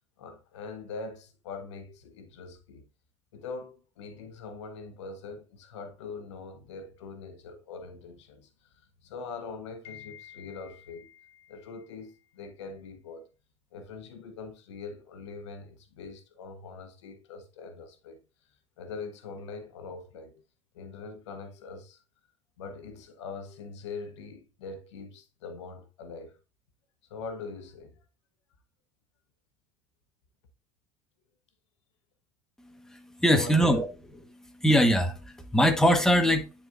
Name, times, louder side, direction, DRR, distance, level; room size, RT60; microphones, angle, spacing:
voice 1, 0.2-2.8 3.3-13.2 13.7-18.2 18.8-20.4 20.7-22.0 22.6-26.4 27.1-27.9 33.3-33.8, left 4 dB, 85° left, 1.0 m, -42 dB
voice 2, 32.6-33.9 34.3-36.5, equal, 5° left, 1.2 m, -23 dB
9.5 x 4.2 x 2.5 m
hypercardioid pair, 75°, 15 cm